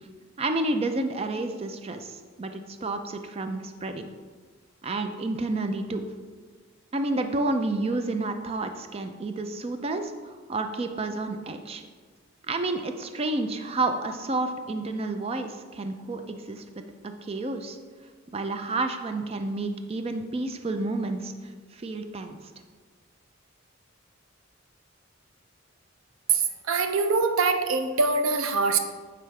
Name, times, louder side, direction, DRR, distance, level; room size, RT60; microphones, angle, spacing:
voice 1, 0.4-4.1 4.8-6.0 6.9-11.8 12.5-16.6 17.0-17.8 18.3-21.3 21.7-22.4, right 2 dB, 30° right, 7 dB, 0.4 m, -30 dB
voice 2, 26.3-28.8, right 4 dB, 90° right, 7 dB, 0.6 m, -24 dB
9.0 x 3.8 x 3.2 m, 1.5 s
head